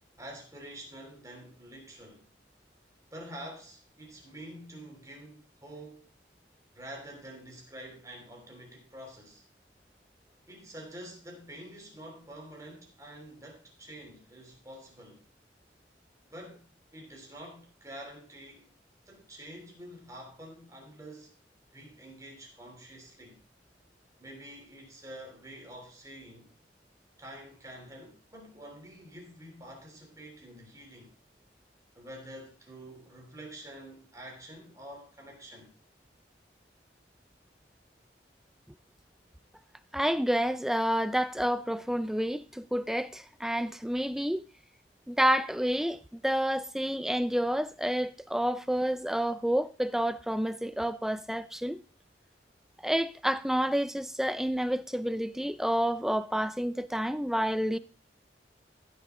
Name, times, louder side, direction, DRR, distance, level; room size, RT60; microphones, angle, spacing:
voice 1, 0.2-2.2 3.1-6.1 6.7-9.4 10.5-15.2 16.3-18.7 19.0-21.3 21.7-23.4 24.2-26.5 27.2-31.1 31.9-35.7, right 1 dB, 20° right, 3.0 m, -47 dB
voice 2, 39.9-44.4 45.1-51.8 52.8-57.8, equal, ahead, 0.4 m, -29 dB
14.5 x 6.7 x 3.6 m
head